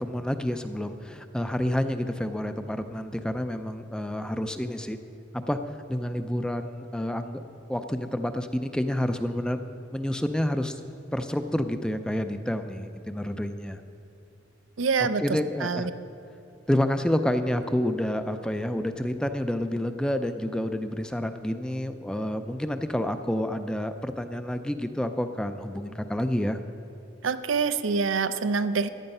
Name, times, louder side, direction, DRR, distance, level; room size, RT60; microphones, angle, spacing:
voice 1, 0.0-5.0 5.3-5.6 5.9-7.4 7.7-9.6 9.9-10.8 11.1-13.8 15.2-15.9 16.7-26.6, left 1 dB, 5° left, 8 dB, 0.4 m, -29 dB
voice 2, 14.8-15.2 15.6-15.9 27.2-28.9, right 5 dB, 85° right, 10 dB, 0.6 m, -25 dB
14.5 x 10.5 x 5.4 m, 2.6 s
head